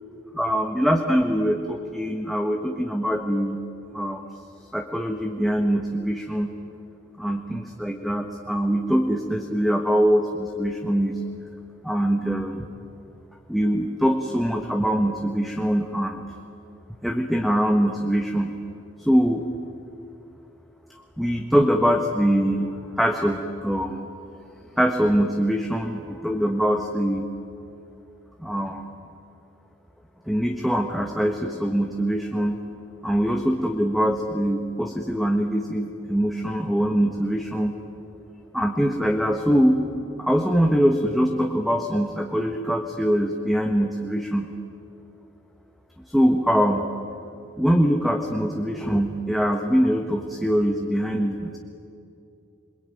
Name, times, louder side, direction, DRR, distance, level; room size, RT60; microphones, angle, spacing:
voice 1, 0.3-3.6 3.9-4.2 4.7-6.5 7.2-11.2 11.8-12.6 13.5-16.2 17.0-18.5 19.0-19.4 21.2-24.1 24.8-27.3 28.4-28.9 30.3-32.6 33.0-37.7 38.5-39.8 40.2-44.5 46.1-46.9 47.6-51.6, equal, ahead, 1 dB, 1.4 m, -23 dB
27.0 x 22.0 x 9.2 m, 2.7 s
head